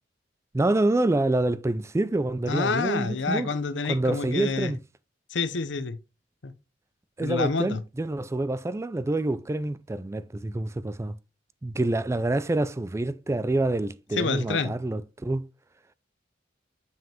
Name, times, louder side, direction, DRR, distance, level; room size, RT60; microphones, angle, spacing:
voice 1, 0.5-3.5 3.9-4.8 7.2-11.2 11.6-15.5, right 2 dB, 15° right, 0.3 m, -27 dB
voice 2, 2.5-4.7 5.3-6.0 6.4-6.5 7.2-7.8 14.1-14.7, left 4 dB, 75° left, 0.7 m, -28 dB
7.2 x 6.0 x 2.9 m
head